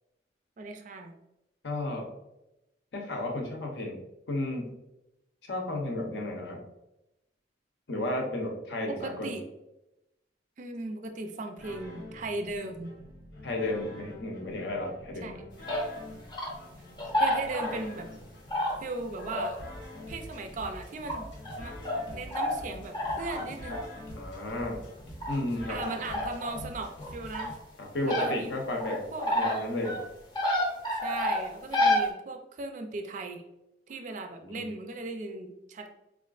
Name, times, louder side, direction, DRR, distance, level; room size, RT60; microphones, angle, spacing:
voice 1, 0.6-1.1 8.9-9.4 10.6-12.9 15.2-15.4 17.2-18.1 18.8-19.6 20.1-21.3 21.6-21.7 22.1-23.8 25.7-27.5 28.0-28.5 29.1-29.4 30.9-33.4 33.9-36.0, right 3 dB, 40° right, 5 dB, 0.3 m, -37 dB
voice 2, 1.6-2.1 2.9-4.0 4.3-4.7 5.5-6.6 7.9-9.3 13.4-15.3 16.8-16.9 24.1-24.9 25.3-25.8 26.5-26.7 27.8-29.1 29.3-30.0 34.4-34.6, left 1 dB, 65° left, 1 dB, 0.7 m, -33 dB
sound 1, 11.6-27.6, left 1 dB, 85° left, 1.1 m, -45 dB
sound 2, 15.7-15.8 16.3-16.5 17.0-17.9 18.5-18.8 19.2-19.6 20.0-20.1 21.1-21.6 21.8-22.0 22.3-22.5 22.9-23.8 25.2-25.4 25.8-26.6 27.0-27.5 28.1-28.3 28.8-29.6 29.8-30.0 30.4-32.0, left 1 dB, 25° left, 0.7 m, -29 dB
4.1 x 2.4 x 2.3 m, 0.91 s
head